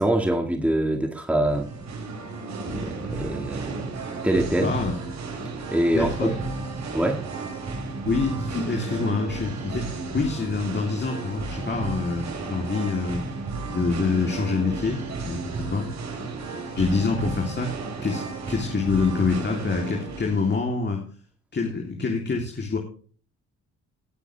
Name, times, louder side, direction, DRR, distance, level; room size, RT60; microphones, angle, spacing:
voice 1, 0.0-1.7 2.7-3.8 4.2-4.7 5.7-6.3 6.9-7.2, right 1 dB, 5° right, 3 dB, 2.0 m, -24 dB
Singing, 1.4-20.5, right 3 dB, 65° right, 6.9 m, -33 dB
voice 2, 4.6-5.0 5.9-6.4 8.0-13.2 13.7-15.9 16.7-17.7 18.0-21.0 21.5-22.8, left 4 dB, 35° left, 1 dB, 3.3 m, -26 dB
19.5 x 8.3 x 3.4 m, 0.41 s
cardioid pair, 90°, 30 cm